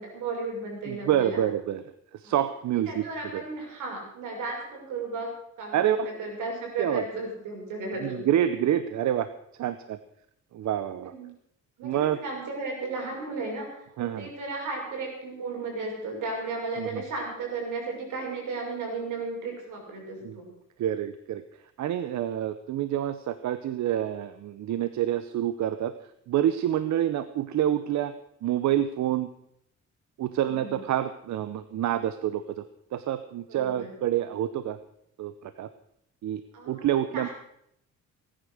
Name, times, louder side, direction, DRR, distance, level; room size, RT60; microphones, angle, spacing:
voice 1, 0.0-1.4 2.2-2.3 2.8-8.3 11.0-11.3 11.8-13.7 14.0-20.5 30.4-30.8 33.5-33.9 36.5-37.3, right 3 dB, 85° right, 1 dB, 6.2 m, -35 dB
voice 2, 0.9-1.8 2.1-3.4 5.7-6.1 6.8-7.0 8.0-9.3 9.6-10.0 10.5-11.1 11.8-12.2 14.0-14.3 16.8-17.0 20.2-20.4 20.8-21.4 21.8-25.9 26.3-28.1 28.4-29.3 30.2-32.6 32.9-34.8 35.2-35.7 36.2-37.3, right 11 dB, 70° right, 12 dB, 0.8 m, -27 dB
17.5 x 9.9 x 6.6 m, 0.73 s
cardioid pair, 90°, 30 cm